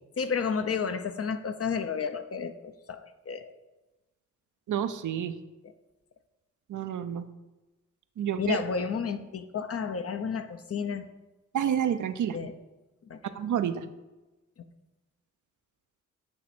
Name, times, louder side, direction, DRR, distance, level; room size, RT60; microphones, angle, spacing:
voice 1, 0.2-3.5 5.6-5.7 8.4-11.1 12.3-12.5 13.0-13.2, left 6 dB, 50° left, 9 dB, 0.7 m, -31 dB
voice 2, 4.7-5.3 6.7-7.2 8.2-8.6 11.5-12.4 13.4-13.8, right 9 dB, 75° right, 10 dB, 0.6 m, -29 dB
8.6 x 3.1 x 6.0 m, 1.1 s
cardioid pair, 55°, 31 cm